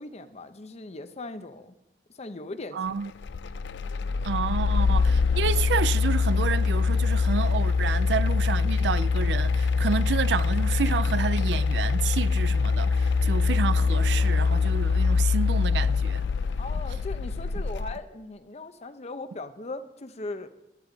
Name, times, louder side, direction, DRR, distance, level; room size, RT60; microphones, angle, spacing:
voice 1, 0.0-1.7 2.2-2.8 16.6-20.5, left 2 dB, 40° left, 0.7 m, -38 dB
voice 2, 2.7-3.1 4.2-16.2, right 6 dB, 75° right, 0.4 m, -30 dB
sound 1, 3.2-17.9, left 4 dB, 85° left, 0.4 m, -24 dB
13.0 x 12.5 x 4.0 m
head